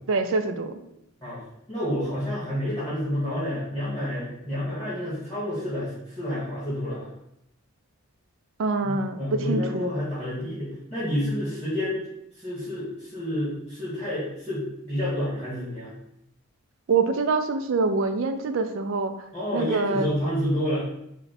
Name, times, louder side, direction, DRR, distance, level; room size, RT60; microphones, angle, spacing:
voice 1, 0.1-0.8 8.6-9.9 16.9-19.1 19.5-20.1, right 4 dB, 60° right, 8 dB, 0.3 m, -25 dB
voice 2, 1.2-7.1 8.8-12.0 12.3-15.9 19.3-20.9, equal, 10° left, -10 dB, 1.3 m, -29 dB
3.9 x 2.2 x 4.0 m, 0.81 s
head